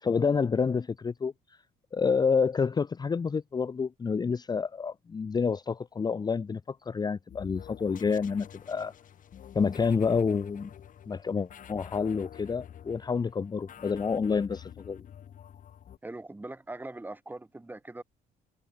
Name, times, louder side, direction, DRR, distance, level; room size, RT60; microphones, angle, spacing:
voice 1, 0.0-1.3 1.9-8.9 9.5-10.7 11.1-15.0, left 5 dB, 25° left, 0.8 m, -28 dB
sound 1, 7.3-16.0, left 9 dB, 50° left, 6.1 m, -48 dB
voice 2, 16.0-18.0, right 2 dB, 10° right, 2.5 m, -41 dB
cardioid pair, 110°, 17 cm